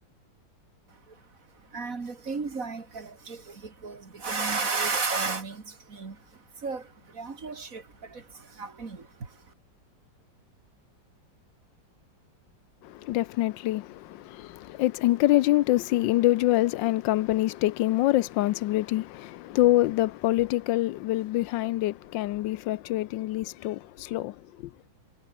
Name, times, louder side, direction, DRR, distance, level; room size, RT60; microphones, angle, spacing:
voice 1, 0.9-9.5, right 4 dB, 45° right, 2.7 m, -34 dB
voice 2, 12.8-24.7, left 16 dB, 80° left, 1.3 m, -25 dB
omnidirectional pair, 2.0 m